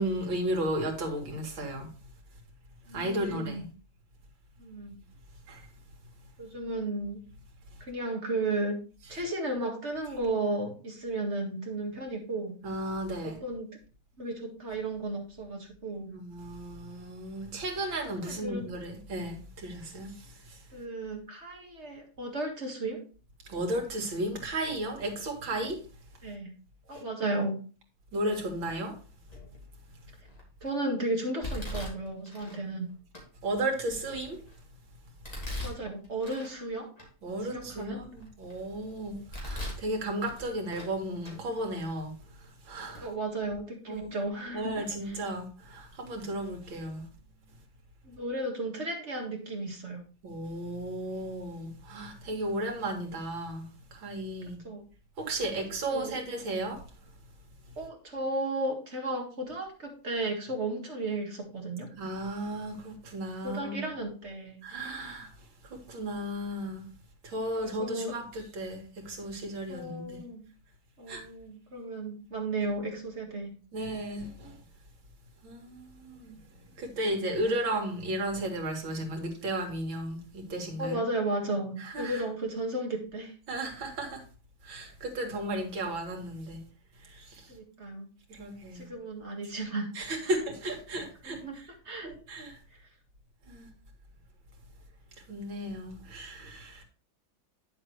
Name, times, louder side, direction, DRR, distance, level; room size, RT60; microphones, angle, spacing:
voice 1, 0.0-1.9 2.9-3.7 5.5-5.6 12.6-13.4 16.1-20.6 23.4-25.8 26.9-27.0 28.1-29.0 32.5-32.6 33.4-34.4 35.4-35.5 37.2-42.1 42.7-43.1 43.9-44.3 44.5-47.0 50.2-53.6 53.9-54.6 55.2-56.8 62.0-63.8 64.6-65.3 65.7-66.8 67.2-70.2 71.1-71.2 73.7-74.6 75.4-76.4 76.8-81.0 81.8-82.2 83.5-84.2 84.6-86.6 87.0-87.5 88.3-88.9 89.9-91.7 92.0-92.6 93.5-93.7 95.3-96.8, right 1 dB, 80° right, 2.8 m, -34 dB
voice 2, 2.9-3.6 4.6-5.0 6.4-7.2 7.8-8.8 9.1-12.5 13.2-13.7 14.2-16.1 18.2-18.7 20.7-23.0 26.2-26.5 26.9-27.6 30.6-32.9 35.6-36.9 37.4-38.0 43.0-45.2 48.0-50.0 54.6-54.8 55.6-55.7 55.9-56.2 57.8-61.9 63.4-64.6 67.6-68.1 69.7-70.4 71.0-73.5 77.1-77.3 80.8-83.3 87.5-88.1 88.7-89.9 91.2-92.1, right 2 dB, 35° right, 2.0 m, -34 dB
Domestic sounds home sounds, 29.3-29.7 30.2-30.7 31.4-32.6 33.1-33.2 33.8-34.6 35.2-36.6 37.0-37.1 37.6-38.6 39.1-39.9 40.2-40.9 41.2-41.4 42.2-42.3 42.9-43.0 43.4-43.6, left 1 dB, 20° left, 2.9 m, -40 dB
9.3 x 7.4 x 3.1 m
omnidirectional pair, 2.1 m